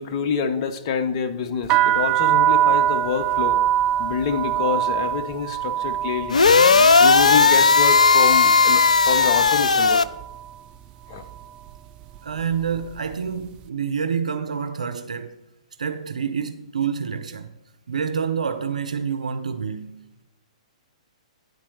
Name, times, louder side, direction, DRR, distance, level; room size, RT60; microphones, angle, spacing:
voice 1, 0.0-3.6 4.0-6.4 7.0-10.0 11.1-11.2, left 6 dB, 45° left, 0.7 m, -26 dB
sound 1, 1.6-9.6 9.8-10.5 11.1-11.4 11.7-13.1, right 11 dB, 30° right, 0.4 m, -24 dB
sound 2, 6.3-10.0, left 4 dB, 85° left, 0.4 m, -15 dB
voice 2, 12.2-15.4 15.8-17.5 17.9-20.0, right 6 dB, 80° right, 0.6 m, -27 dB
9.5 x 4.3 x 6.4 m
hypercardioid pair, 125°, 4 cm